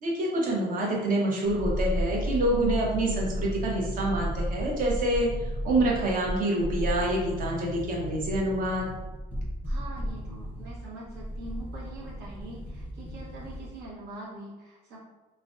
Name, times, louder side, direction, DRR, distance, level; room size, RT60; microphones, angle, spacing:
voice 1, 0.0-5.3 5.6-8.9, right 1 dB, 55° right, -2 dB, 0.7 m, -27 dB
sound 1, 1.4-13.8 14.1-14.2, equal, 10° right, 0.6 m, -34 dB
voice 2, 9.6-15.0, right 2 dB, 75° right, -5 dB, 0.9 m, -43 dB
2.4 x 2.1 x 2.4 m, 1.1 s
cardioid pair, 110°, 17 cm